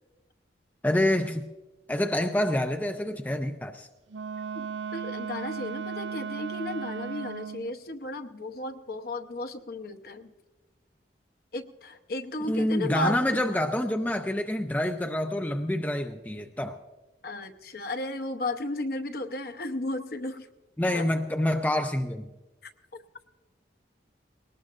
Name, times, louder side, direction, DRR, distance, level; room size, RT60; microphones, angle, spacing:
voice 1, 0.8-1.5 1.9-3.9 12.5-16.8 20.8-22.3, left 1 dB, 10° left, 6 dB, 0.5 m, -27 dB
Wind instrument woodwind instrument, 4.1-7.7, right 6 dB, 90° right, 0.4 m, -36 dB
voice 2, 4.5-10.3 11.5-13.2 17.2-20.5 20.9-21.1, left 2 dB, 55° left, 8 dB, 0.9 m, -34 dB
20.5 x 18.5 x 2.5 m, 1.1 s
head